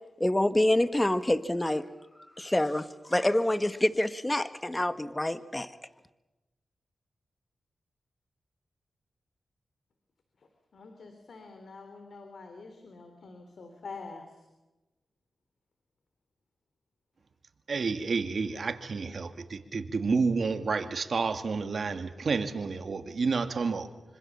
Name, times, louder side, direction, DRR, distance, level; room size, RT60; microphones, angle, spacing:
voice 1, 0.2-1.8 2.4-5.7, left 1 dB, 15° left, 11 dB, 1.6 m, -27 dB
voice 2, 10.7-14.2, left 4 dB, 70° left, 6 dB, 3.4 m, -46 dB
voice 3, 17.7-23.9, right 4 dB, 65° right, 7 dB, 2.4 m, -30 dB
26.0 x 25.5 x 7.3 m, 1.1 s
cardioid pair, 50°, 0 cm